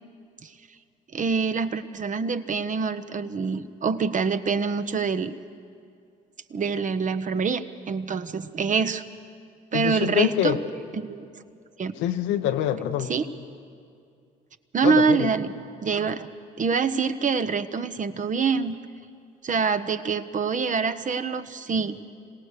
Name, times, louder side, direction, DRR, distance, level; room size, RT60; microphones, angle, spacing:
voice 1, 1.1-5.3 6.5-9.1 9.7-10.6 11.0-11.2 11.8-11.9 13.1-13.2 14.7-15.5 15.8-16.3 16.6-18.8 19.4-22.0, right 5 dB, 40° right, 10 dB, 1.0 m, -25 dB
voice 2, 9.7-10.6 12.0-13.1 14.8-15.3, left 11 dB, 80° left, 7 dB, 1.1 m, -25 dB
26.5 x 17.5 x 6.7 m, 2.3 s
supercardioid pair, 60°, 19 cm